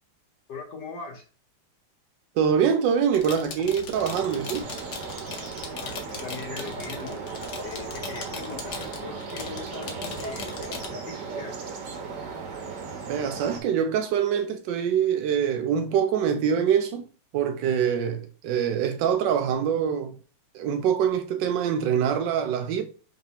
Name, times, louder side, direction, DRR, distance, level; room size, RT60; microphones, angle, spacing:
voice 1, 0.5-1.3 5.6-7.2 7.6-11.6, left 4 dB, 60° left, 1.3 m, -40 dB
voice 2, 2.4-4.7 13.1-17.0 17.3-20.2 20.5-22.8, right 8 dB, 80° right, 1.0 m, -24 dB
sound 1, 3.1-10.9, left 5 dB, 85° left, 0.6 m, -39 dB
sound 2, 3.9-13.6, right 4 dB, 60° right, 1.4 m, -36 dB
4.8 x 3.2 x 2.8 m
omnidirectional pair, 2.4 m